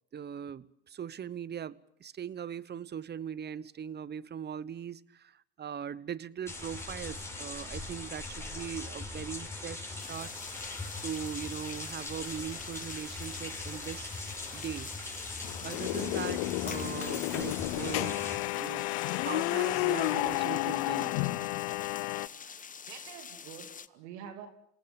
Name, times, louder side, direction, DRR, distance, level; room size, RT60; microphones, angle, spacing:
voice 1, 0.1-1.7 2.0-10.3 11.0-14.1 14.5-14.9 15.6-18.2 18.6-21.2, right 8 dB, 30° right, 19 dB, 1.1 m, -40 dB
sound 1, 6.5-18.4, left 2 dB, 10° left, 6.9 m, -41 dB
sound 2, 10.0-23.9, left 6 dB, 25° left, 1.1 m, -46 dB
sound 3, 15.4-22.3, left 20 dB, 70° left, 0.9 m, -31 dB
voice 2, 19.9-20.3 22.3-24.5, right 8 dB, 75° right, 8 dB, 3.0 m, -48 dB
28.0 x 18.5 x 8.9 m, 0.72 s
hypercardioid pair, 85°, 34 cm